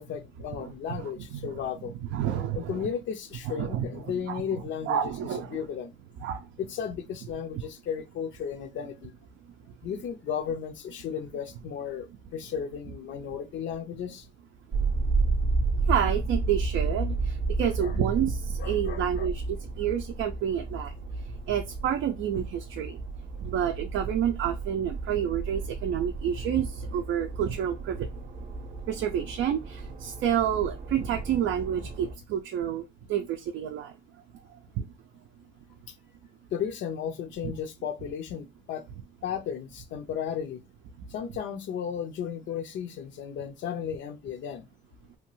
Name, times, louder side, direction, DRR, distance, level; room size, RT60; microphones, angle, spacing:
voice 1, 0.0-1.9 2.5-5.0 5.5-5.9 6.6-9.1 9.8-14.3 17.6-18.0 18.6-19.3 35.9-36.0 36.5-38.9 39.2-40.6 41.1-44.7, left 8 dB, 70° left, 0.5 m, -34 dB
voice 2, 1.0-1.6 2.1-2.9 3.5-4.4 4.9-5.6 6.2-6.4 15.9-17.1 17.6-20.9 21.5-23.0 23.4-28.1 28.9-32.8 33.1-33.9 34.8-34.9 37.4-37.5, right 9 dB, 85° right, 0.4 m, -29 dB
sound 1, 14.7-32.1, right 3 dB, 40° right, 0.6 m, -32 dB
2.8 x 2.3 x 3.0 m
cardioid pair, 90°, 20 cm